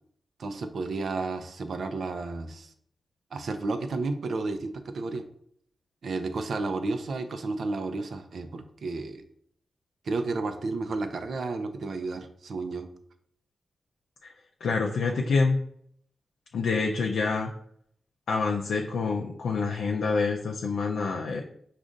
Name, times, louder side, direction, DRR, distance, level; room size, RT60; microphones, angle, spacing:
voice 1, 0.4-2.7 3.3-5.3 6.0-9.2 10.0-12.9, right 3 dB, 75° right, 8 dB, 0.5 m, -32 dB
voice 2, 14.6-15.6 16.5-17.5 18.3-21.4, left 4 dB, 85° left, 0 dB, 0.4 m, -26 dB
5.1 x 2.4 x 3.7 m, 0.67 s
cardioid pair, 45°, 0 cm